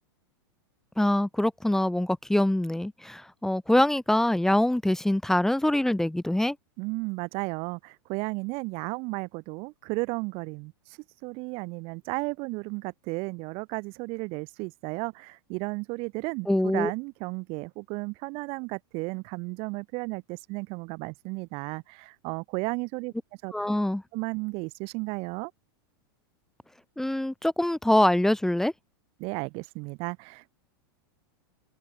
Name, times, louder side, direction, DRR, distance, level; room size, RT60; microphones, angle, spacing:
voice 1, 1.0-6.6 16.5-16.9 23.5-24.0 27.0-28.7, left 1 dB, 5° left, 2.6 m, -24 dB
voice 2, 6.8-23.1 23.4-23.5 24.1-25.5 29.2-30.5, right 28 dB, 50° right, 3.2 m, -34 dB
hypercardioid pair, 120°, 12 cm